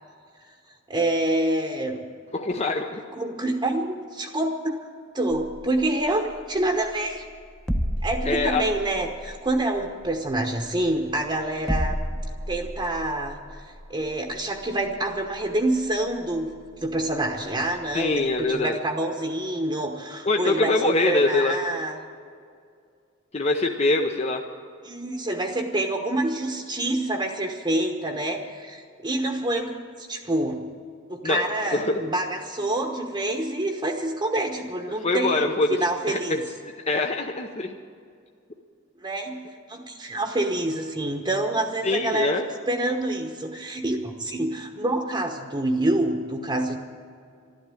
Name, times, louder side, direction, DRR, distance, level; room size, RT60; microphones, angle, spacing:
voice 1, 0.9-2.0 3.1-4.8 5.1-7.2 8.0-12.0 12.5-13.6 13.9-16.5 16.8-22.0 24.8-30.6 31.1-36.4 39.0-39.4 39.7-42.3 42.7-46.7, right 1 dB, 25° right, 3 dB, 1.0 m, -27 dB
voice 2, 2.3-3.0 8.3-8.6 17.9-18.8 20.3-21.6 23.3-24.4 31.2-31.4 31.7-32.0 35.0-35.8 36.1-36.4 36.9-37.8 41.8-42.5, left 2 dB, 35° left, 3 dB, 0.7 m, -23 dB
sound 1, 5.3-18.7, equal, 5° left, 0.8 m, -35 dB
13.0 x 11.5 x 9.0 m, 2.2 s
head